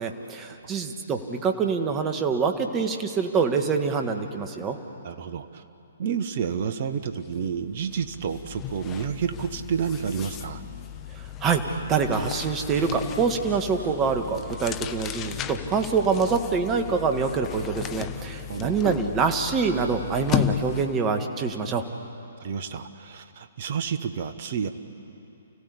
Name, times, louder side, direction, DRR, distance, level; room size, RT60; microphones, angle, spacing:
voice 1, 0.0-4.8 11.1-21.8, right 5 dB, 20° right, 6 dB, 1.8 m, -25 dB
voice 2, 5.0-5.6 6.0-10.6 18.5-18.7 22.4-24.7, right 7 dB, 45° right, 9 dB, 1.4 m, -30 dB
sound 1, 7.1-7.3 7.6-21.1, left 11 dB, 20° left, 0.9 m, -35 dB
29.5 x 16.0 x 8.6 m, 2.8 s
figure-of-eight pair, 125°, 0 cm